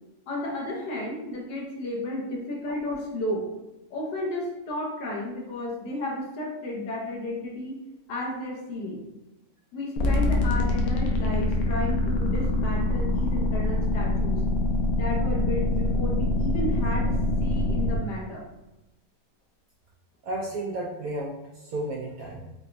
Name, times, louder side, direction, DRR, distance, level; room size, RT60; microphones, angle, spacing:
voice 1, 0.3-3.5 3.9-7.8 8.1-9.0 9.7-14.4 15.0-18.5, left 1 dB, 70° left, -2 dB, 1.3 m, -32 dB
sound 1, 10.0-18.0, left 2 dB, 90° left, 0.7 m, -24 dB
voice 2, 20.2-22.4, right 1 dB, 70° right, -4 dB, 0.8 m, -33 dB
4.7 x 2.2 x 2.5 m, 0.99 s
omnidirectional pair, 2.0 m